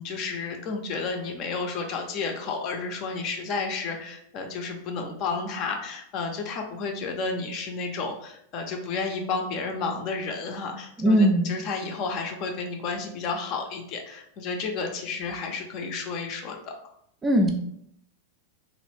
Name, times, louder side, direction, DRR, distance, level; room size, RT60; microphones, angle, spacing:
voice 1, 0.0-16.6, left 4 dB, 40° left, 3 dB, 0.5 m, -31 dB
voice 2, 11.0-11.5 17.2-17.5, equal, 15° right, 4 dB, 0.4 m, -19 dB
3.0 x 2.5 x 3.2 m, 0.71 s
figure-of-eight pair, 90°, 0 cm